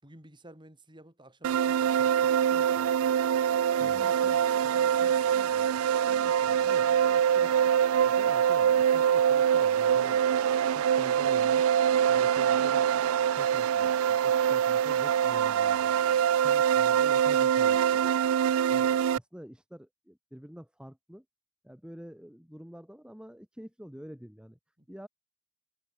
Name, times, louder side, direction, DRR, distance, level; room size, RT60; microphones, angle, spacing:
voice 1, 0.0-3.1 3.8-6.6 24.8-24.9, right 1 dB, 20° right, 6.0 m, -53 dB
sound 1, 1.4-19.2, right 9 dB, 85° right, 0.3 m, -24 dB
voice 2, 3.8-4.4 6.4-7.5 8.0-10.3 10.7-11.7 12.1-16.1 16.4-18.4 18.7-21.2 21.6-24.6 24.9-25.1, equal, 5° right, 1.3 m, -48 dB
head